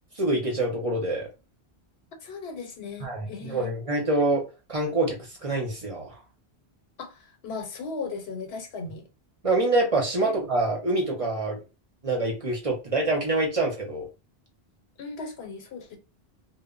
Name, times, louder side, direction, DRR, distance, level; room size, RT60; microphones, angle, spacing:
voice 1, 0.2-1.3 3.0-4.4 4.7-6.1 9.4-11.6 12.0-14.0, right 2 dB, 40° right, 0.6 m, -26 dB
voice 2, 2.2-3.7 7.0-9.0 10.2-10.3 15.0-16.0, left 4 dB, 80° left, 0.9 m, -37 dB
2.1 x 2.0 x 3.6 m
omnidirectional pair, 1.0 m